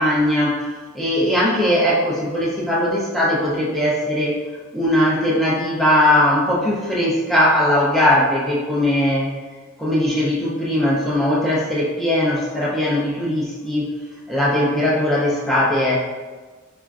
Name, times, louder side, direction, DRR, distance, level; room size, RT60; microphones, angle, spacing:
voice 1, 0.0-4.4 4.7-9.3 9.8-13.9 14.3-16.0, left 1 dB, ahead, -6 dB, 0.4 m, -19 dB
4.2 x 2.4 x 2.3 m, 1.3 s
head